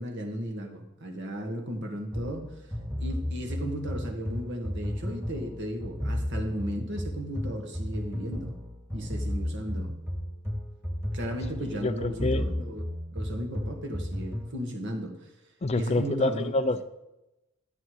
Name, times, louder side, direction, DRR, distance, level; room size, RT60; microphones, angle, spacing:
voice 1, 0.0-2.5 3.0-8.6 8.9-10.0 11.1-12.8 13.1-15.3 15.7-16.5, equal, 55° right, 3 dB, 1.7 m, -35 dB
sound 1, 2.1-14.6, equal, 10° right, 2.4 m, -34 dB
voice 2, 11.8-12.4 15.6-16.8, left 2 dB, 30° left, 10 dB, 0.4 m, -27 dB
13.0 x 8.2 x 4.8 m, 0.94 s
head